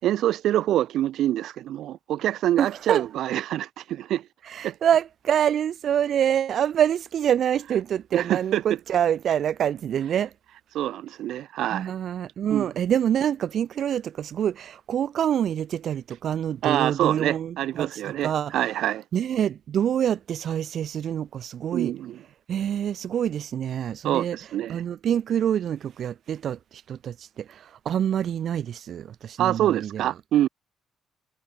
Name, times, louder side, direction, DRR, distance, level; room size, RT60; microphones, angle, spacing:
voice 1, 0.0-4.2 4.6-4.7 8.1-8.6 10.7-11.9 12.5-12.7 16.6-19.0 21.7-22.2 24.0-24.8 29.4-30.5, right 12 dB, 80° right, 4.1 m, -25 dB
voice 2, 2.6-3.1 4.5-10.3 11.7-18.6 19.1-21.9 22.5-24.4 24.7-30.1, right 9 dB, 65° right, 5.5 m, -26 dB
cardioid pair, 90°, 0 cm